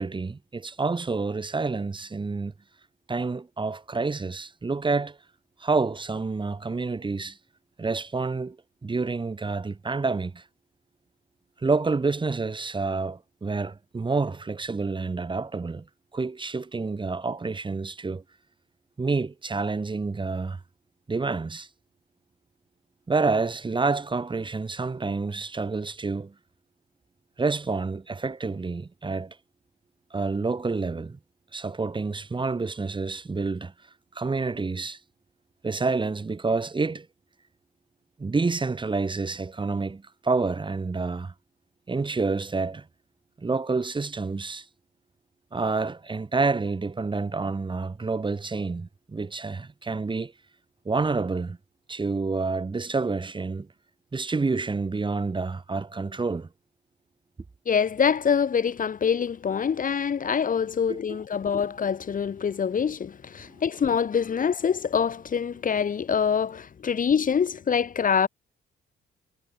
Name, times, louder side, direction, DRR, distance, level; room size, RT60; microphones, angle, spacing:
voice 1, 0.0-2.5 3.1-5.2 5.6-7.4 7.8-8.6 8.8-10.4 11.6-15.9 16.1-18.2 19.0-20.6 21.1-21.7 23.1-26.3 27.4-29.4 30.1-31.2 31.5-33.7 34.1-35.0 35.6-37.1 38.2-41.3 41.9-42.8 43.4-44.6 45.5-50.3 50.8-51.6 51.9-53.7 54.1-56.5 60.9-61.2, right 4 dB, 25° right, 1.8 m, -28 dB
voice 2, 57.7-68.3, left 7 dB, 45° left, 1.4 m, -25 dB
cardioid pair, 90°, 20 cm